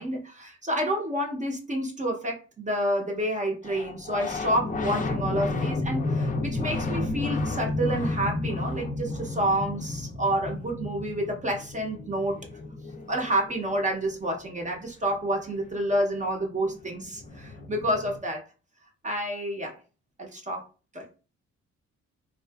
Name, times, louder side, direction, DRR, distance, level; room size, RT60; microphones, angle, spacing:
voice 1, 0.0-12.4 13.1-18.4 19.0-19.8 20.2-20.6 20.9-21.2, right 1 dB, 25° right, 0.5 m, -29 dB
sound 1, 3.6-14.1 16.1-16.2 16.4-18.2, left 2 dB, 30° left, 0.4 m, -32 dB
2.6 x 2.3 x 2.2 m
cardioid pair, 105°, 29 cm